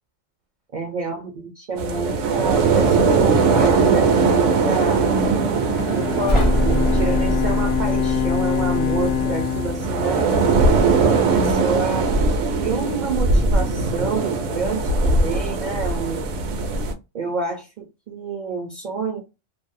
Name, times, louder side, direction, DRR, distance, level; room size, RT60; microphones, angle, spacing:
voice 1, 0.7-5.1 5.9-10.3 11.1-12.1 12.6-16.4 17.1-19.2, right 4 dB, 55° right, 0.5 m, -28 dB
sound 1, 1.8-16.9, right 4 dB, 75° right, 0.9 m, -20 dB
Bowed string instrument, 5.5-10.9, left 10 dB, 70° left, 0.9 m, -25 dB
sound 2, 6.3-9.3, equal, 40° left, 0.4 m, -23 dB
2.6 x 2.0 x 2.5 m
omnidirectional pair, 1.3 m